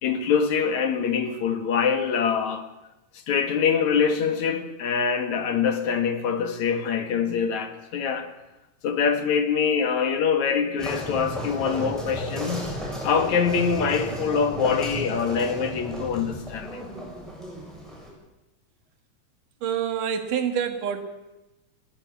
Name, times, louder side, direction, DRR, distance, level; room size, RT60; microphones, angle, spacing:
voice 1, 0.0-2.7 3.1-8.3 8.8-12.8 13.0-16.8, left 6 dB, 60° left, 2.7 m, -24 dB
sound 1, 10.8-18.1, equal, ahead, 6.9 m, -34 dB
voice 2, 19.6-21.0, right 8 dB, 70° right, 3.2 m, -26 dB
20.5 x 16.5 x 8.3 m
omnidirectional pair, 3.8 m